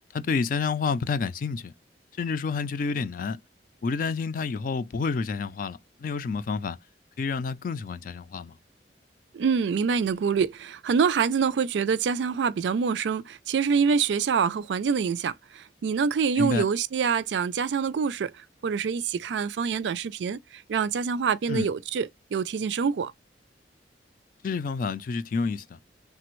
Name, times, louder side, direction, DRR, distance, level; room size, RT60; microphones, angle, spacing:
voice 1, 0.1-1.7 2.2-3.4 3.8-6.8 7.2-8.6 16.4-16.7 21.5-21.7 24.4-25.8, left 4 dB, 50° left, 0.3 m, -29 dB
voice 2, 9.3-18.3 18.6-20.4 20.7-23.1, right 6 dB, 80° right, 0.4 m, -26 dB
3.3 x 2.0 x 3.0 m
head